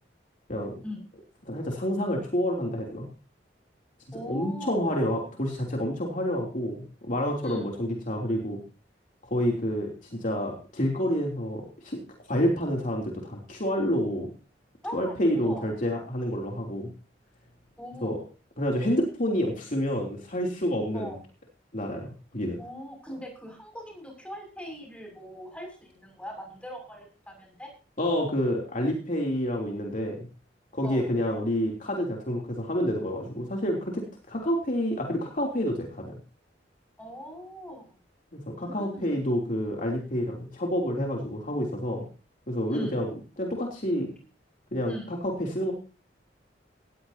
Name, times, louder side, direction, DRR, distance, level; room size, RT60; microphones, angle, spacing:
voice 1, 1.4-3.1 4.2-8.6 9.2-12.0 12.3-14.3 14.9-16.9 18.0-18.2 18.6-21.1 21.7-22.6 28.0-30.3 30.7-36.1 38.3-42.1 42.5-43.1 43.4-44.1 44.7-45.7, equal, 45° left, 0 dB, 3.1 m, -28 dB
voice 2, 4.1-4.9 7.4-7.7 14.8-15.7 17.8-18.2 20.9-21.2 22.6-27.7 30.8-31.1 37.0-38.0 38.6-39.2 42.7-43.0 44.9-45.1, equal, 5° left, 2 dB, 6.6 m, -40 dB
19.0 x 15.0 x 2.8 m, 0.34 s
head